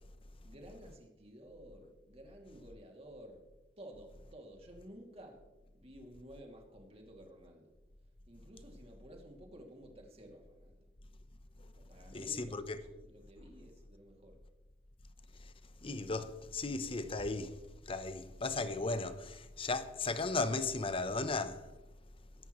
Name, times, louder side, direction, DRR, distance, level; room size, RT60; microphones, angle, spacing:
voice 1, 0.4-3.4 3.8-7.7 8.3-10.9 11.7-14.4, right 1 dB, 35° right, 2.4 m, -54 dB
voice 2, 12.1-12.8 15.4-15.5 15.8-17.6 17.9-21.7, left 3 dB, 30° left, 0.8 m, -36 dB
22.0 x 11.0 x 3.1 m
head